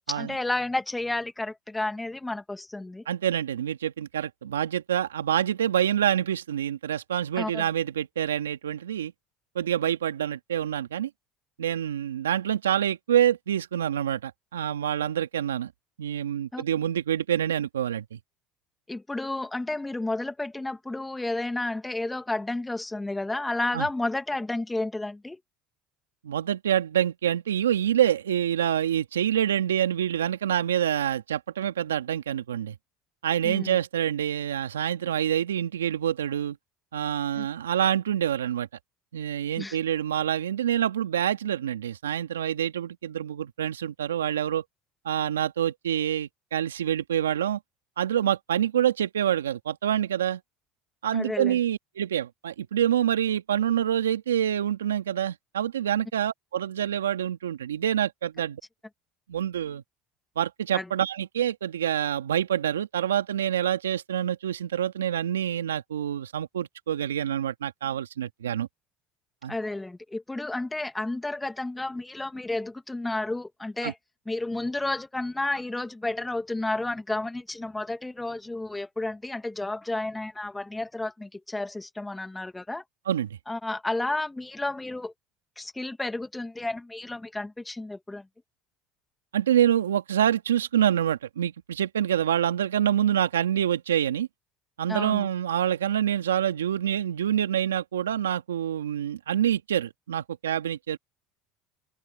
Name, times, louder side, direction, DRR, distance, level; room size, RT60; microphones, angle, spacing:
voice 1, 0.0-3.0 7.4-7.7 16.5-16.6 18.9-25.4 33.4-33.8 37.4-37.5 39.6-39.8 51.1-51.6 60.7-60.9 69.5-74.0 74.3-82.8 83.5-85.1 85.6-88.3 94.9-95.3, left 2 dB, 10° left, 2.4 m, -31 dB
voice 2, 3.1-9.1 9.5-11.1 11.6-15.7 16.0-18.2 23.7-23.9 26.2-32.8 33.2-36.6 36.9-38.7 39.1-44.6 45.0-47.6 48.0-50.4 51.0-58.6 59.3-59.8 60.4-68.7 69.4-69.6 73.8-73.9 83.1-83.4 89.3-94.3 94.8-101.0, right 10 dB, 85° right, 2.2 m, -26 dB
open air
hypercardioid pair, 70°, 0 cm